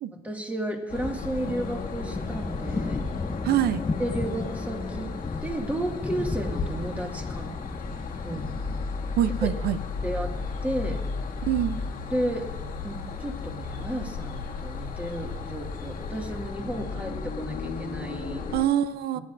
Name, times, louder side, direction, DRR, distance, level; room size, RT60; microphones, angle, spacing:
voice 1, 0.2-3.0 4.0-5.1 5.4-7.6 8.2-8.5 9.4-9.5 10.0-11.0 12.1-12.5 12.8-18.4 19.1-19.2, right 1 dB, 10° right, 1 dB, 2.0 m, -33 dB
sound 1, 0.9-18.7, left 4 dB, 55° left, 1.5 m, -34 dB
sound 2, 1.0-16.5, left 3 dB, 10° left, 0.4 m, -37 dB
voice 2, 3.4-3.8 9.2-9.8 11.5-11.8 18.5-19.2, right 11 dB, 70° right, 13 dB, 0.6 m, -24 dB
19.5 x 10.5 x 2.6 m, 1.1 s
cardioid pair, 110°, 17 cm